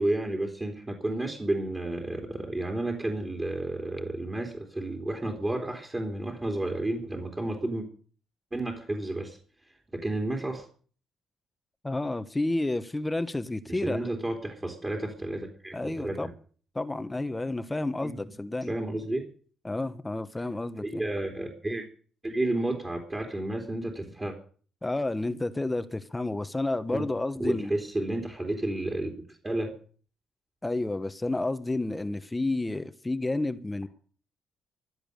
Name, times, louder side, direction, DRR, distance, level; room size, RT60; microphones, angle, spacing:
voice 1, 0.0-7.9 8.5-10.7 13.7-16.3 18.0-18.1 18.7-19.3 20.8-21.8 22.2-24.4 26.9-27.1 27.4-29.7, right 1 dB, 20° right, 3.4 m, -31 dB
voice 2, 11.8-14.1 15.7-16.3 16.7-18.7 19.6-21.0 24.8-27.7 30.6-33.9, left 2 dB, 15° left, 1.2 m, -30 dB
16.0 x 11.0 x 6.7 m
cardioid pair, 90°, 0 cm